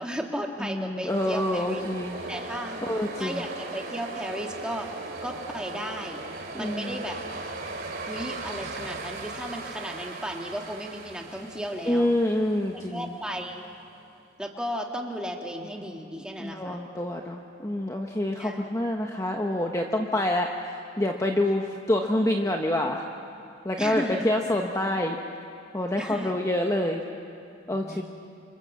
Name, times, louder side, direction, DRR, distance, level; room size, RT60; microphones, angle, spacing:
voice 1, 0.0-1.8 2.3-2.8 3.2-4.9 5.2-6.3 6.5-7.2 8.1-12.1 12.9-13.7 14.4-16.8 18.4-18.6 23.8-24.3 26.0-26.3 27.7-28.0, equal, 5° right, 1 dB, 2.2 m, -34 dB
voice 2, 0.6-2.2 2.8-3.4 6.5-7.1 11.8-13.1 16.4-23.0 23.6-25.2 25.7-27.0 27.7-28.0, left 1 dB, 15° left, 2 dB, 1.1 m, -27 dB
sound 1, 1.1-14.0, right 2 dB, 50° right, 2.7 m, -38 dB
27.0 x 27.0 x 7.5 m, 2.5 s
head